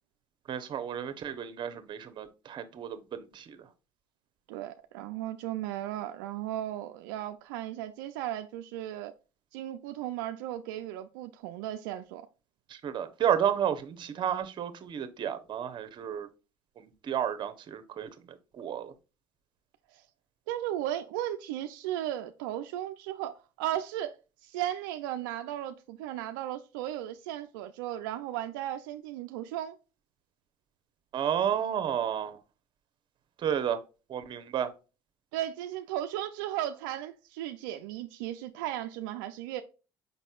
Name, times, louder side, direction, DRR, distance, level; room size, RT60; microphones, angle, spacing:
voice 1, 0.5-3.6 12.7-16.3 16.8-18.9 31.1-32.4 33.4-33.8 34.1-34.7, right 9 dB, 45° right, 0.8 m, -32 dB
voice 2, 4.5-9.1 9.5-12.3 19.9-20.0 20.5-24.1 24.4-29.8 35.3-39.6, right 12 dB, 90° right, 0.4 m, -35 dB
5.5 x 4.1 x 2.3 m
supercardioid pair, 90°, 11 cm